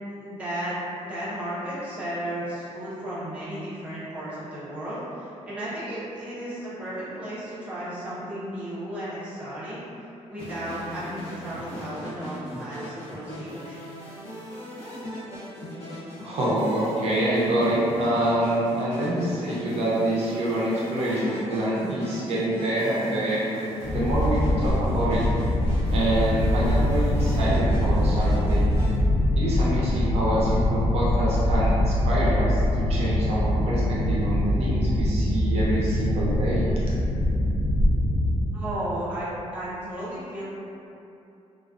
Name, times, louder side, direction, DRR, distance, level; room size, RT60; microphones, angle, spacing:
voice 1, 0.2-9.8 10.3-13.8 38.5-40.4, right 1 dB, 10° right, -12 dB, 0.6 m, -34 dB
sound 1, 10.4-29.0, left 1 dB, 55° left, 0.8 m, -39 dB
voice 2, 16.2-23.4 23.9-25.2 25.9-28.6 29.4-36.7, right 1 dB, 60° right, -8 dB, 0.5 m, -26 dB
sound 2, 23.8-38.4, left 1 dB, 75° left, 0.4 m, -23 dB
2.3 x 2.3 x 2.3 m, 2.8 s
cardioid pair, 175°, 12 cm